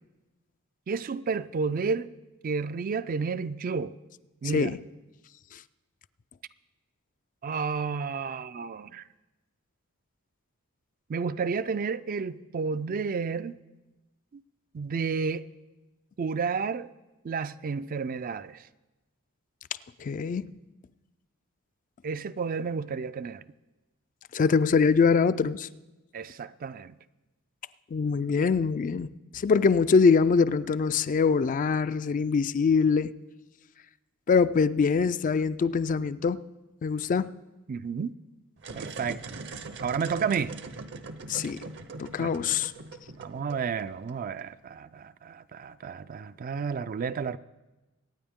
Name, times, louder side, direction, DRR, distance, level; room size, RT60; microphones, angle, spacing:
voice 1, 0.9-2.1 2.4-3.9 4.4-4.7 7.4-9.0 11.1-13.5 14.3-14.4 14.7-15.5 16.2-16.9 17.2-18.6 22.0-23.4 26.1-26.9 37.7-38.1 38.7-39.4 39.8-40.5 42.2-42.3 43.2-47.4, right 5 dB, 40° right, 0.4 m, -31 dB
voice 2, 20.0-20.5 24.3-25.7 27.9-33.1 34.3-36.4 36.8-37.3 41.3-41.6 42.0-42.7, left 5 dB, 35° left, 0.3 m, -23 dB
sound 1, 38.6-44.4, right 3 dB, 55° right, 0.8 m, -42 dB
24.0 x 9.3 x 3.6 m
head